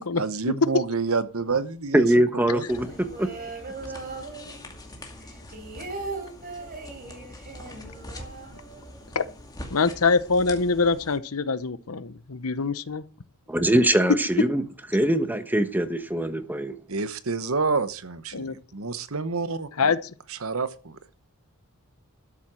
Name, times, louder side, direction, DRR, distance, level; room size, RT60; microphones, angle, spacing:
voice 1, 0.2-2.6 16.9-19.7 20.3-21.0, right 4 dB, 65° right, 1.1 m, -28 dB
voice 2, 1.9-2.9 3.2-3.3 13.5-14.6 14.9-16.7, right 1 dB, 10° right, 1.2 m, -22 dB
sound 1, 2.7-11.2, left 1 dB, 15° left, 2.2 m, -44 dB
sound 2, 2.7-4.9 5.2-9.2 9.4-9.5 9.8-10.3, right 3 dB, 45° right, 3.9 m, -39 dB
voice 3, 9.7-13.0 18.3-18.5 19.8-20.0, left 4 dB, 75° left, 0.9 m, -24 dB
12.5 x 7.4 x 6.3 m
head